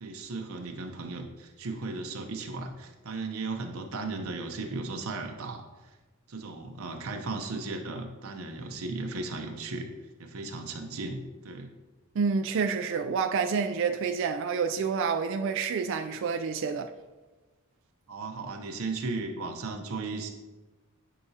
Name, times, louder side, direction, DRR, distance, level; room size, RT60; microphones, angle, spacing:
voice 1, 0.0-5.6 6.3-9.9 10.2-11.7 18.1-20.3, right 3 dB, 80° right, 0.8 m, -36 dB
voice 2, 12.2-16.9, right 5 dB, 60° right, 0.3 m, -28 dB
10.0 x 4.8 x 2.8 m
head